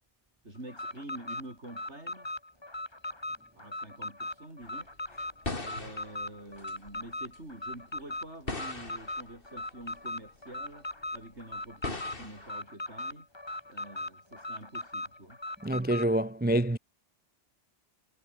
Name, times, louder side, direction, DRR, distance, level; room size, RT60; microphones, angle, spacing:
voice 1, 0.4-2.3 3.6-4.9 5.5-13.3 13.7-15.4, right 1 dB, 70° right, 8.3 m, -47 dB
Alarm, 0.7-16.1, left 2 dB, 20° left, 2.3 m, -39 dB
sound 1, 4.6-7.4 7.7-10.4 10.6-12.5, left 2 dB, 50° left, 3.3 m, -41 dB
voice 2, 15.6-16.8, right 1 dB, 10° right, 0.5 m, -27 dB
omnidirectional pair, 1.2 m